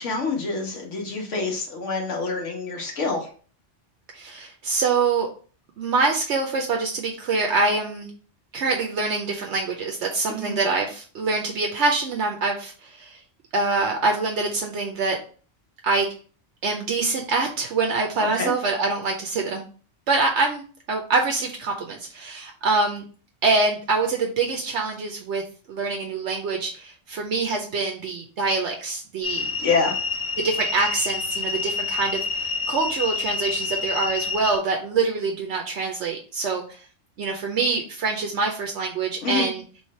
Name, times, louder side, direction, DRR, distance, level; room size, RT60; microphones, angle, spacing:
voice 1, 0.0-3.3 10.3-10.5 18.2-18.5 29.6-30.0 39.2-39.5, left 4 dB, 80° left, 0 dB, 1.4 m, -26 dB
voice 2, 4.1-5.3 5.8-8.1 8.5-13.2 13.5-15.2 15.8-16.1 16.6-19.7 20.1-23.0 23.4-25.4 25.7-29.5 30.4-36.8 37.2-39.6, right 3 dB, 75° right, 2 dB, 0.9 m, -25 dB
sound 1, 29.2-34.6, left 4 dB, 35° left, 0.8 m, -28 dB
3.2 x 3.2 x 4.2 m, 0.40 s
omnidirectional pair, 1.2 m